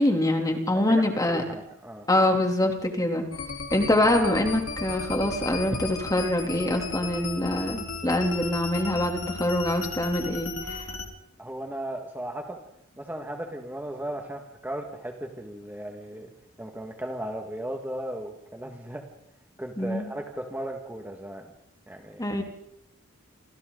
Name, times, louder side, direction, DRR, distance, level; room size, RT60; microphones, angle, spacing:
voice 1, 0.0-1.4 2.1-3.2 3.7-10.8 19.8-20.1 22.2-22.4, left 1 dB, 20° left, 3 dB, 3.1 m, -24 dB
voice 2, 0.7-2.0 11.4-12.6 13.0-16.3 16.6-19.1 19.6-21.5 21.9-22.2, right 1 dB, 10° right, 2 dB, 1.9 m, -36 dB
sound 1, 3.3-11.1, left 4 dB, 75° left, 3.6 m, -35 dB
29.0 x 25.5 x 4.0 m, 0.77 s
head